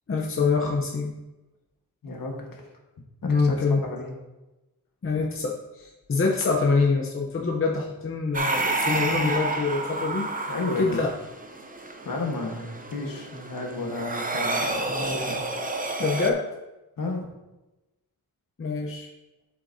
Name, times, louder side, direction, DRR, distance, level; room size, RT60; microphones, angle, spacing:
voice 1, 0.1-1.1 3.2-3.8 5.0-10.3 10.8-11.1 16.0-16.4 18.6-19.1, left 4 dB, 35° left, -1 dB, 0.8 m, -25 dB
voice 2, 2.0-2.6 3.2-4.2 10.5-11.1 12.0-15.4 17.0-17.3, left 2 dB, 60° left, 0 dB, 1.5 m, -32 dB
sound 1, 8.3-16.3, right 2 dB, 25° right, 0.6 m, -30 dB
8.1 x 7.7 x 2.7 m, 1.0 s
wide cardioid pair, 175°, 37 cm